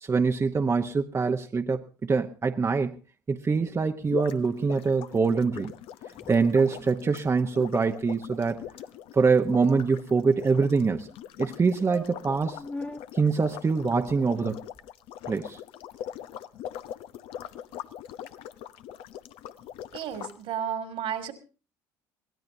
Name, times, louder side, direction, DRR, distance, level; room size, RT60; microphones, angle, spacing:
voice 1, 0.0-3.0 3.3-5.7 6.3-8.6 9.1-11.1 11.4-12.6 13.1-14.6 15.3-15.6, right 4 dB, 30° right, 5 dB, 1.0 m, -24 dB
sound 1, 4.0-20.3, left 10 dB, 70° left, 0.8 m, -41 dB
sound 2, 6.1-7.0 7.2-7.4 7.7-7.9 8.2-8.3 8.5-8.7 9.4-10.4 11.1-11.2 11.5-11.6 11.9-13.0 13.9-14.9, left 2 dB, 15° left, 1.0 m, -44 dB
voice 2, 19.9-21.3, right 9 dB, 65° right, 7 dB, 2.5 m, -32 dB
23.0 x 17.0 x 2.7 m, 0.34 s
hypercardioid pair, 70°, 10 cm